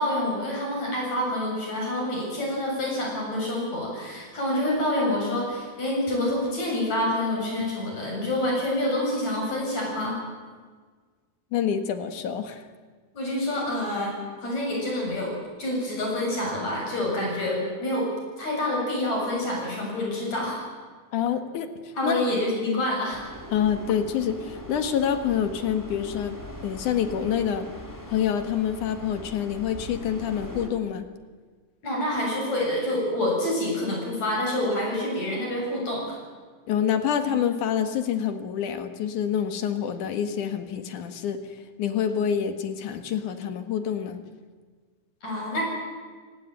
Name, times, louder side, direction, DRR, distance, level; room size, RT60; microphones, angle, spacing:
voice 1, 0.0-10.2 13.1-15.3 15.6-18.1 18.4-20.6 22.0-23.2 31.8-36.2 45.2-45.6, left 1 dB, 65° left, -2 dB, 9.1 m, -27 dB
voice 2, 11.5-12.7 21.1-21.7 22.0-22.3 22.7-22.8 23.5-26.4 26.6-27.7 28.1-31.0 36.7-41.4 41.8-44.2, left 8 dB, 85° left, 9 dB, 3.2 m, -27 dB
sound 1, 23.1-30.7, equal, 5° left, 3.1 m, -41 dB
30.0 x 18.0 x 9.2 m, 1.5 s
omnidirectional pair, 3.4 m